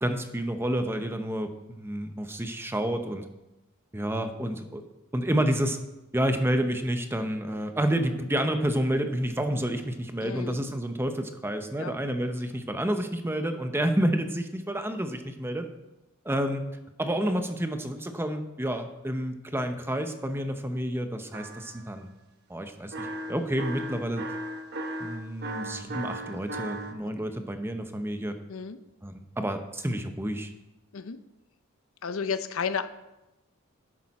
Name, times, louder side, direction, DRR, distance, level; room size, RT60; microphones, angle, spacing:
voice 1, 0.0-3.2 3.9-4.9 5.1-5.8 6.1-15.7 16.2-16.6 17.0-22.1 22.5-24.2 25.0-28.4 29.0-30.5, right 1 dB, 10° right, 7 dB, 0.8 m, -29 dB
voice 2, 10.2-10.6 11.8-11.9 28.5-28.8 30.9-31.2 32.0-32.9, left 6 dB, 70° left, 12 dB, 0.6 m, -32 dB
sound 1, 21.3-21.9 22.9-26.9, right 1 dB, 50° right, 1.2 m, -36 dB
11.0 x 10.5 x 4.2 m, 0.98 s
head